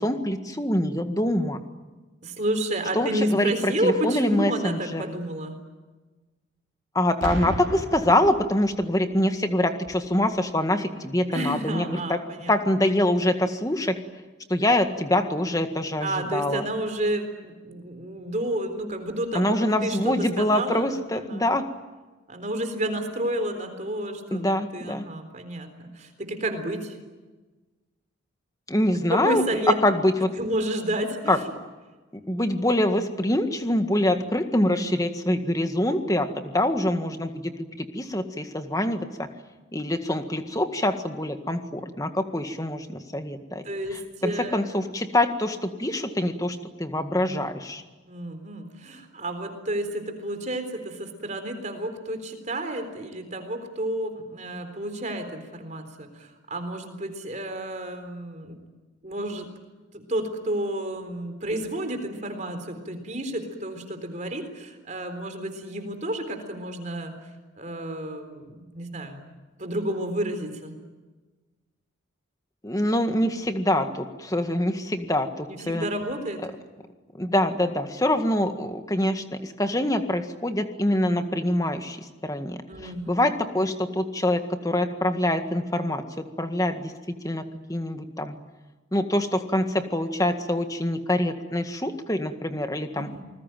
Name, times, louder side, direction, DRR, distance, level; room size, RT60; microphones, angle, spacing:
voice 1, 0.0-1.6 3.0-5.0 6.9-12.2 12.5-14.0 14.5-16.6 19.3-21.6 24.3-25.1 28.7-29.4 29.8-30.3 31.3-31.4 32.3-37.5 37.8-39.3 39.7-43.6 43.9-47.8 72.6-75.9 76.4-76.5 77.2-82.0 82.2-86.9 87.2-87.4 87.7-88.4 88.9-93.1, left 1 dB, 15° left, 7 dB, 1.8 m, -25 dB
voice 2, 2.2-5.6 11.3-12.5 16.0-21.5 22.3-27.0 29.1-29.8 30.4-31.5 43.6-44.6 48.1-58.6 59.0-59.5 59.9-67.2 67.6-69.2 69.6-70.8 75.0-75.1 75.5-76.5 82.7-83.2 92.9-93.2, right 1 dB, 35° right, 7 dB, 3.9 m, -31 dB
Boom, 7.2-9.0 9.8-10.1, right 1 dB, 60° right, 4.2 m, -34 dB
28.0 x 20.5 x 9.2 m, 1.2 s
head